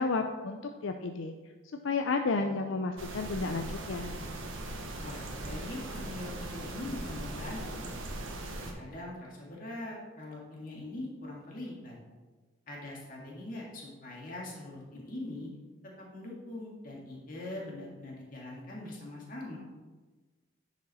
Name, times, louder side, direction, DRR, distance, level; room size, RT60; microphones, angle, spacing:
voice 1, 0.0-1.3 1.8-4.1, left 4 dB, 75° left, 5 dB, 0.5 m, -32 dB
sound 1, 3.0-8.7, right 1 dB, 85° right, 1.2 m, -39 dB
voice 2, 5.0-7.9 8.6-12.0 12.7-15.5 16.0-19.6, left 1 dB, 45° left, -3 dB, 2.0 m, -42 dB
10.0 x 5.1 x 4.2 m, 1.3 s
head